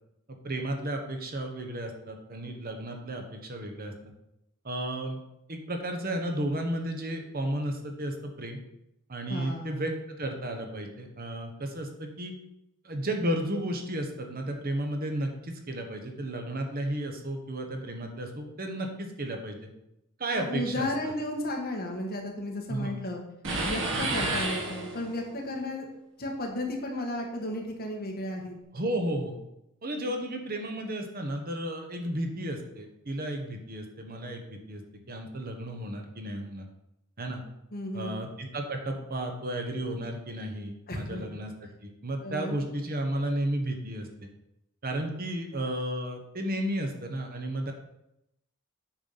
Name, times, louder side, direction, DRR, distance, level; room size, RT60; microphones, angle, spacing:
voice 1, 0.3-3.9 4.6-5.2 5.5-8.6 9.1-12.3 12.8-19.7 20.2-20.9 22.7-23.0 28.7-29.4 29.8-34.8 35.1-36.7 37.2-37.4 37.9-44.3 44.8-47.7, right 1 dB, 45° right, 4 dB, 1.2 m, -33 dB
voice 2, 9.3-9.8 20.3-23.2 23.6-25.9 26.2-28.6 37.7-38.2 40.9-41.2 42.2-42.6, left 1 dB, 45° left, 1 dB, 1.6 m, -34 dB
sound 1, 23.4-25.3, right 2 dB, 60° right, 1.9 m, -30 dB
9.0 x 4.8 x 5.7 m, 0.84 s
head